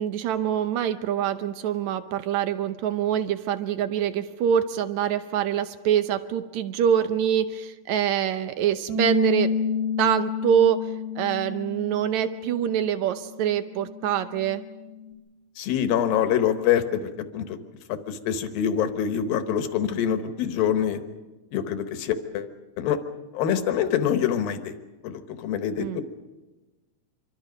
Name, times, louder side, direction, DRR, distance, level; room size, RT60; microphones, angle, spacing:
voice 1, 0.0-9.5 10.0-14.6 25.8-26.0, right 9 dB, 75° right, 11 dB, 1.7 m, -25 dB
Bass guitar, 8.9-15.1, left 5 dB, 45° right, 3.1 m, -31 dB
voice 2, 15.6-17.6 17.9-21.0 21.5-22.5 22.8-23.0 23.3-24.7 25.0-26.0, left 9 dB, 80° left, 8 dB, 3.1 m, -25 dB
26.5 x 24.0 x 5.3 m, 1.1 s
omnidirectional pair, 4.1 m